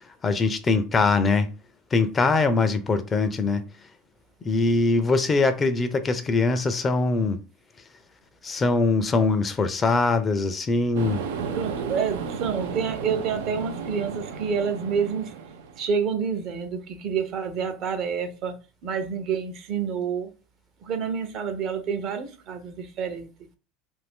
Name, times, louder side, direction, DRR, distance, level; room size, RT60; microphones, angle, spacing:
voice 1, 0.2-1.5 1.9-3.6 4.4-7.4 8.4-11.2, left 3 dB, 30° left, 0.5 m, -22 dB
car wash drying process, 10.9-15.9, right 6 dB, 85° right, 0.5 m, -33 dB
voice 2, 11.5-15.3 15.8-20.3 20.8-23.3, right 6 dB, 55° right, 0.7 m, -28 dB
2.6 x 2.6 x 3.5 m
supercardioid pair, 100°, 0 cm